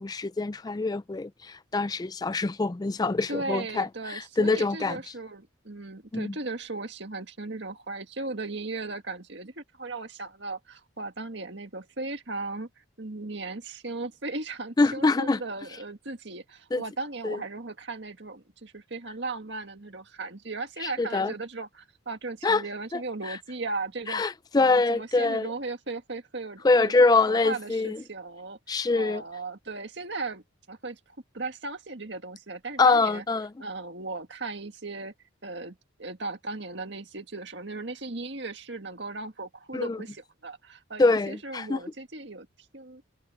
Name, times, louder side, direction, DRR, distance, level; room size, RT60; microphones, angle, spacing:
voice 1, 0.0-5.0 6.1-6.3 14.8-15.4 16.7-16.8 17.2-17.4 20.8-21.3 22.4-22.6 22.9-23.0 23.3-23.4 24.1-25.5 26.6-28.0 28.7-29.2 32.8-33.5 39.7-40.0 41.0-41.8, left 3 dB, 20° left, 0.3 m, -24 dB
voice 2, 3.3-12.7 13.0-24.2 24.5-30.4 30.7-31.0 31.3-33.2 33.6-35.1 35.4-42.5 42.7-43.0, right 3 dB, 55° right, 2.0 m, -37 dB
head